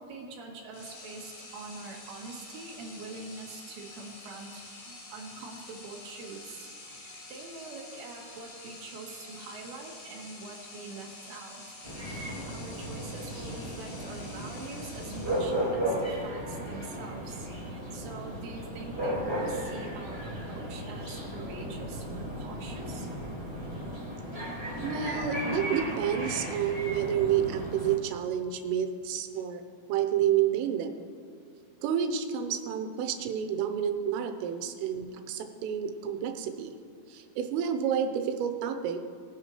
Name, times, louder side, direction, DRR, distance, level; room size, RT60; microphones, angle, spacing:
voice 1, 0.0-11.6 12.0-12.2 12.5-23.1, right 3 dB, 65° right, -1 dB, 2.8 m, -44 dB
sound 1, 0.7-15.8, left 2 dB, 75° left, 5.9 m, -48 dB
sound 2, 11.8-28.0, right 1 dB, 15° left, 1.5 m, -35 dB
voice 2, 24.8-29.6 29.9-31.0 31.8-36.7 37.1-39.0, right 9 dB, 85° right, 7 dB, 3.3 m, -29 dB
20.0 x 9.7 x 3.1 m, 2.4 s
omnidirectional pair, 5.8 m